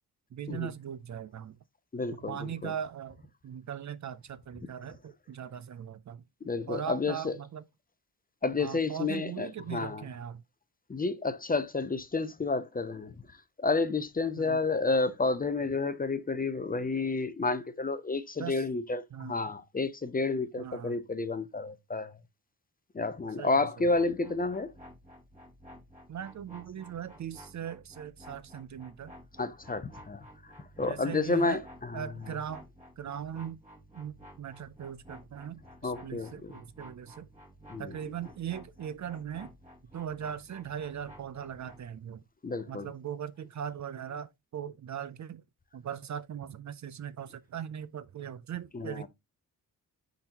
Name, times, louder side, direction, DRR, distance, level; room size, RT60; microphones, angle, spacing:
voice 1, 0.3-1.6 2.3-6.2 6.7-7.6 8.6-10.4 14.4-14.6 18.4-18.6 19.1-19.3 20.6-21.0 23.4-23.9 26.1-29.1 30.8-31.6 31.9-32.7 33.0-33.6 33.9-37.3 37.8-39.5 39.9-42.2 42.7-45.4 45.7-49.1, right 9 dB, 50° right, 0.4 m, -39 dB
voice 2, 1.9-2.7 6.4-7.4 8.4-10.0 10.9-13.1 13.6-22.2 22.9-24.7 29.4-30.5 30.8-32.1 35.8-36.5 37.7-38.0 42.4-42.9 48.7-49.1, left 3 dB, 25° left, 0.5 m, -30 dB
sound 1, 23.8-41.9, equal, 20° right, 3.6 m, -53 dB
10.0 x 3.9 x 2.8 m
wide cardioid pair, 150°, 38 cm